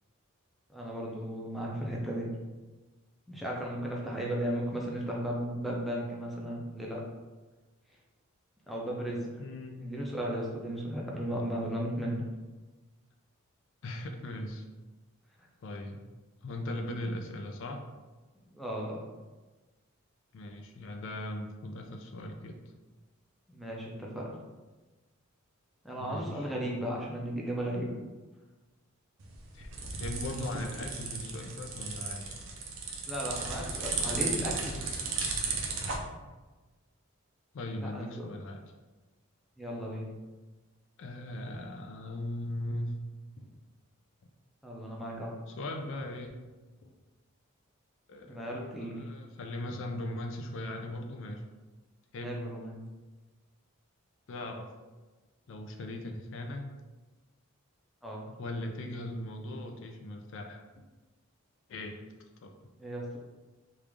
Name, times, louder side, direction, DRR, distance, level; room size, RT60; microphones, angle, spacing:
voice 1, 0.7-2.3 3.3-7.0 8.7-9.3 9.8-12.2 16.8-17.1 18.3-19.1 23.5-24.2 25.8-27.9 33.1-34.8 37.8-38.3 39.6-40.1 44.6-45.3 48.2-49.0 52.2-52.8 58.0-58.3 62.8-63.2, equal, ahead, -3 dB, 0.5 m, -35 dB
voice 2, 9.4-9.8 13.8-14.6 15.6-16.0 16.4-17.8 20.3-22.6 26.0-26.5 29.5-32.3 33.6-33.7 37.5-38.6 41.0-43.0 43.4-43.6 45.5-46.3 46.8-46.9 48.1-51.4 52.1-52.5 54.3-54.7 55.5-56.7 58.4-60.6 61.7-62.0 62.4-62.5, left 1 dB, 60° left, 4 dB, 0.4 m, -39 dB
sound 1, 29.2-36.0, right 4 dB, 65° right, 0.5 m, -35 dB
3.2 x 2.4 x 3.4 m, 1.2 s
head